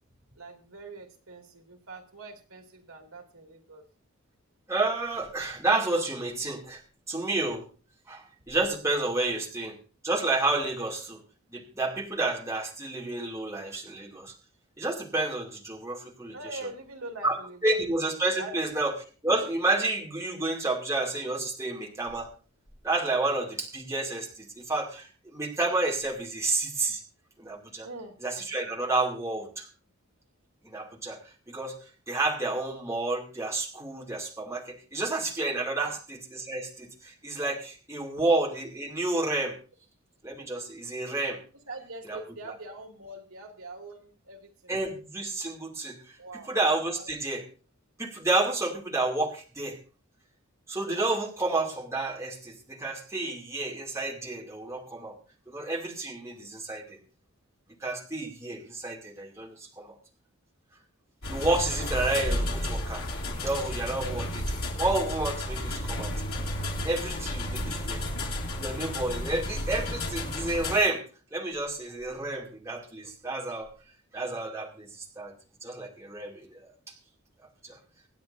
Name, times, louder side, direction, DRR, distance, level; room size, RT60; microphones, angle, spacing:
voice 1, 0.4-3.8 16.3-17.8 18.4-18.7 27.8-28.1 35.8-36.0 41.7-44.7 46.2-46.5 47.0-47.1, right 2 dB, 80° right, 3 dB, 2.5 m, -43 dB
voice 2, 4.7-6.8 7.1-7.6 8.1-9.8 10.0-11.2 11.5-14.3 14.8-16.3 17.2-17.4 17.6-18.9 19.2-22.3 22.8-27.0 27.4-27.9 28.2-29.7 30.6-31.2 31.5-31.8 32.1-39.6 40.2-41.4 42.1-42.2 44.7-46.2 46.5-47.4 48.0-49.8 50.7-55.2 55.5-57.0 57.8-59.9 61.3-63.0 63.3-66.1 66.8-71.0 71.3-73.7 74.1-75.3 75.6-76.7 77.6-77.8, right 2 dB, 15° right, -2 dB, 2.6 m, -30 dB
sound 1, 61.2-70.8, left 1 dB, 85° left, 3.2 m, -32 dB
26.0 x 9.2 x 2.7 m, 0.37 s
head